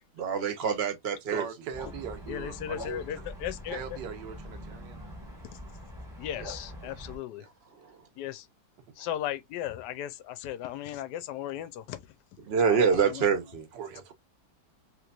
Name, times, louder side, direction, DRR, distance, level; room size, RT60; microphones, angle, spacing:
voice 1, 0.2-1.4 7.8-8.0 12.5-13.7, right 6 dB, 45° right, 0.9 m, -26 dB
voice 2, 1.3-3.3 3.7-5.1 6.4-6.5 6.8-7.0 7.4-7.5 13.7-14.1, right 7 dB, 80° right, 1.3 m, -40 dB
sound 1, 1.7-7.2, left 1 dB, ahead, 1.0 m, -43 dB
voice 3, 2.3-4.0 6.2-7.5 8.2-8.5 9.0-12.0 12.6-13.3, left 11 dB, 75° left, 1.1 m, -36 dB
3.2 x 3.0 x 2.3 m
omnidirectional pair, 1.9 m